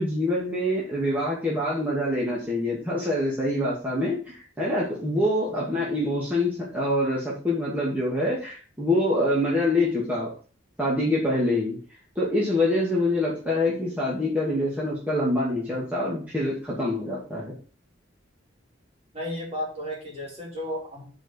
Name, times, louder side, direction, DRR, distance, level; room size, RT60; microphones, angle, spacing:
voice 1, 0.0-10.3 10.8-11.8 12.2-17.5, left 1 dB, 10° right, -7 dB, 2.7 m, -25 dB
voice 2, 19.1-21.1, equal, 35° right, -3 dB, 4.5 m, -33 dB
7.2 x 5.3 x 7.0 m, 0.40 s
head